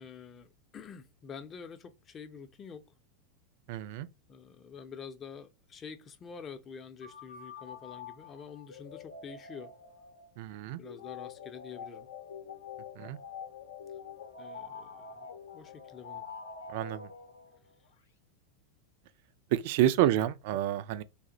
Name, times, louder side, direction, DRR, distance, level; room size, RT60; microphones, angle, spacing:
voice 1, 0.0-2.8 4.3-9.7 10.7-12.1 14.4-16.3 20.0-20.2, left 6 dB, 30° left, 0.5 m, -47 dB
voice 2, 3.7-4.1 10.4-10.8 13.0-13.2 16.7-17.1 19.5-21.0, right 12 dB, 55° right, 0.3 m, -29 dB
sound 1, 7.0-17.7, left 6 dB, 75° left, 0.6 m, -46 dB
2.5 x 2.0 x 3.7 m
figure-of-eight pair, 90°, 0 cm